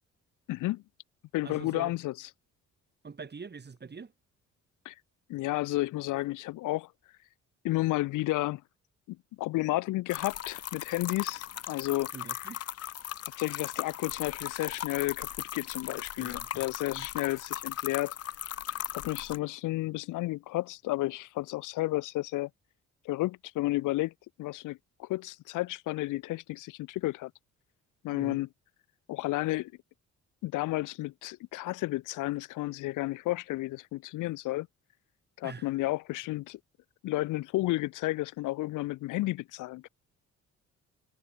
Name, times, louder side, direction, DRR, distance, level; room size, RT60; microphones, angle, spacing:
voice 1, 0.5-0.8 1.3-2.1 4.8-4.9 5.3-6.9 7.6-8.6 9.1-12.1 13.4-18.1 18.9-22.5 23.0-24.1 24.4-27.3 28.0-28.5 29.1-29.7 30.4-34.7 35.4-36.6 37.0-39.9, left 18 dB, 85° left, 0.7 m, -32 dB
voice 2, 1.4-1.9 3.0-4.1 12.1-12.6 16.2-16.7 16.9-17.1 28.1-28.4 35.4-35.7, right 5 dB, 35° right, 7.1 m, -44 dB
sound 1, 10.1-19.4, left 11 dB, 55° left, 0.9 m, -38 dB
cardioid pair, 90°, 30 cm